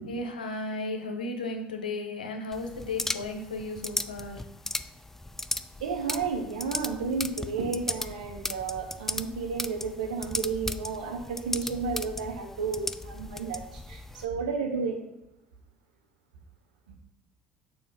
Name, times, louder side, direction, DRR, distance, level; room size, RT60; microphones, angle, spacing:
voice 1, 0.1-4.4, left 2 dB, 80° left, 4 dB, 0.8 m, -34 dB
sound 1, 2.5-14.2, left 2 dB, 10° left, 0.3 m, -36 dB
voice 2, 5.8-15.1, right 5 dB, 75° right, 3 dB, 1.0 m, -32 dB
6.7 x 2.8 x 5.2 m, 0.89 s
figure-of-eight pair, 60°, 4 cm